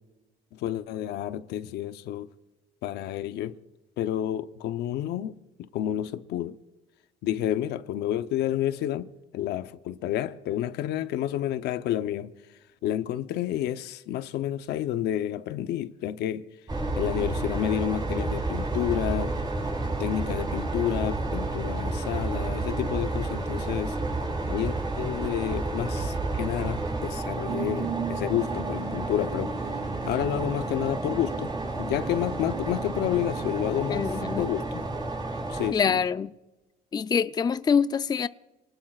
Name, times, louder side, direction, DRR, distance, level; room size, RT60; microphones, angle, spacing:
voice 1, 0.5-2.3 2.8-3.6 4.0-5.3 5.7-6.6 7.2-12.3 12.8-16.5 17.0-19.4 20.0-24.0 24.4-29.5 30.0-31.5 31.8-34.1 34.4-34.8 35.5-36.0, left 12 dB, 80° left, 0.8 m, -30 dB
sound 1, 16.7-35.7, right 2 dB, 25° right, 5.2 m, -31 dB
sound 2, 27.5-34.5, right 10 dB, 80° right, 0.9 m, -39 dB
voice 2, 33.9-34.5 35.7-36.3 36.9-38.3, left 6 dB, 25° left, 0.4 m, -25 dB
28.0 x 19.5 x 2.4 m
cardioid pair, 110°, 17 cm